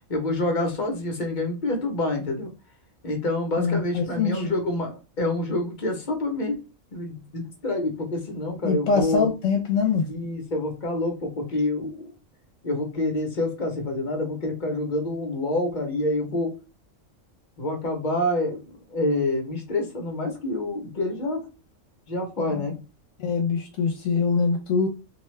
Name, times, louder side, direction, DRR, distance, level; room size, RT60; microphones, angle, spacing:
voice 1, 0.1-2.5 3.0-6.5 6.9-9.3 10.1-12.1 12.6-16.5 17.6-18.6 18.9-21.4 22.1-22.8, left 2 dB, 40° left, 0.9 m, -27 dB
voice 2, 3.6-4.5 8.6-10.1 22.4-22.6 23.2-24.9, left 5 dB, 75° left, 1.0 m, -24 dB
2.7 x 2.3 x 3.1 m
omnidirectional pair, 1.3 m